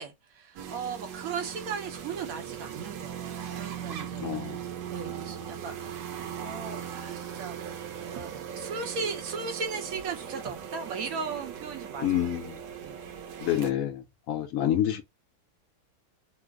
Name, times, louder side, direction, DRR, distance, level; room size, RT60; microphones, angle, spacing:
voice 1, 0.0-4.4 4.9-12.3 12.8-13.0, right 5 dB, 60° right, 1.1 m, -37 dB
sound 1, 0.6-13.7, right 9 dB, 85° right, 1.3 m, -39 dB
voice 2, 4.2-4.6 12.0-12.6 13.4-15.0, left 11 dB, 70° left, 0.8 m, -28 dB
3.1 x 2.0 x 3.4 m
omnidirectional pair, 1.9 m